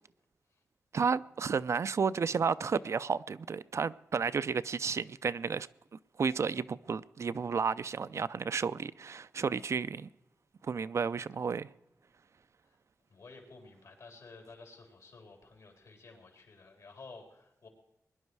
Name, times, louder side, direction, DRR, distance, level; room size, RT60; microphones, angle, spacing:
voice 1, 0.9-5.7 6.2-10.1 10.6-11.7, right 5 dB, 55° right, 0.4 m, -32 dB
voice 2, 13.1-17.7, left 3 dB, 70° left, 3.8 m, -52 dB
21.0 x 10.5 x 4.7 m
wide cardioid pair, 90°, 6 cm